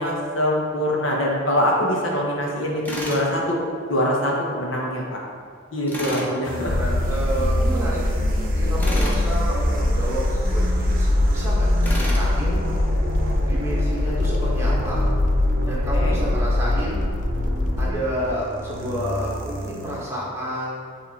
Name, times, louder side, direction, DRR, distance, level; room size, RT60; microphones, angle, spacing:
voice 1, 0.0-3.6 3.9-5.0 5.7-6.9 15.9-16.2, equal, 65° left, -2 dB, 1.2 m, -23 dB
Tools, 2.8-3.3 5.9-6.3 8.8-9.2 11.8-12.3, equal, 10° left, 1.0 m, -30 dB
voice 2, 6.0-8.2 8.5-12.6 13.5-15.1 15.7-17.0 17.8-20.8, equal, 15° right, -7 dB, 1.5 m, -30 dB
sound 1, 6.4-20.1, right 1 dB, 45° right, 0.9 m, -30 dB
sound 2, 6.7-17.9, left 1 dB, 40° left, 0.4 m, -22 dB
8.4 x 3.6 x 4.2 m, 2.1 s
head